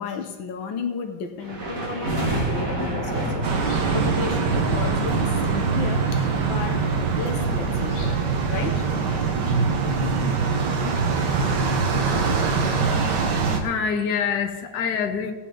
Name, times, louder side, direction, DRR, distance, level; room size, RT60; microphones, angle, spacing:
voice 1, 0.0-8.9 10.5-10.6, left 6 dB, 85° left, 5 dB, 1.8 m, -34 dB
sound 1, 1.4-12.3, right 1 dB, 45° right, 2.7 m, -31 dB
sound 2, 3.4-13.6, right 5 dB, 65° right, 1.8 m, -23 dB
voice 2, 13.4-15.3, left 6 dB, 65° left, 5 dB, 1.6 m, -26 dB
17.5 x 8.8 x 3.9 m, 1.3 s
omnidirectional pair, 2.1 m